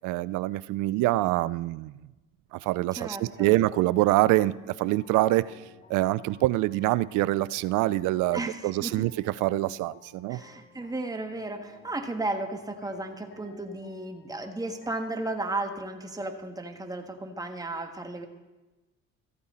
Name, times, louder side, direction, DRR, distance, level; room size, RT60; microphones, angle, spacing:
voice 1, 0.0-2.0 2.5-5.5 5.9-9.1 9.4-10.4, right 17 dB, 70° right, 0.5 m, -25 dB
voice 2, 3.0-3.5 8.3-9.1 10.3-18.3, right 2 dB, 10° right, 1.5 m, -34 dB
sound 1, 3.2-15.4, left 3 dB, 30° left, 2.6 m, -55 dB
14.5 x 8.6 x 4.3 m
supercardioid pair, 70°, 32 cm